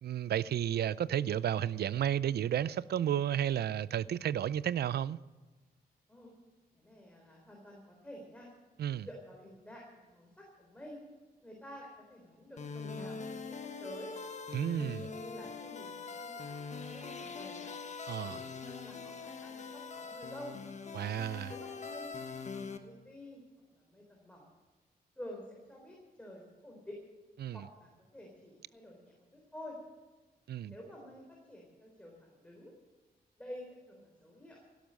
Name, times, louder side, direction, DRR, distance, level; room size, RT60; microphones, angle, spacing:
voice 1, 0.0-5.2 8.8-9.1 14.5-15.1 18.1-18.4 20.9-21.5 27.4-27.6 30.5-30.7, right 10 dB, 80° right, 0.5 m, -32 dB
voice 2, 6.7-8.5 9.0-11.0 11.4-14.2 14.8-17.7 18.2-20.6 21.3-22.2 22.5-23.4 23.7-24.5 25.2-27.0 27.5-29.8 30.7-32.7 33.4-34.6, equal, 10° left, 3.7 m, -50 dB
sound 1, 12.6-22.8, left 5 dB, 45° left, 1.4 m, -43 dB
17.5 x 12.0 x 6.4 m
wide cardioid pair, 110°, 16 cm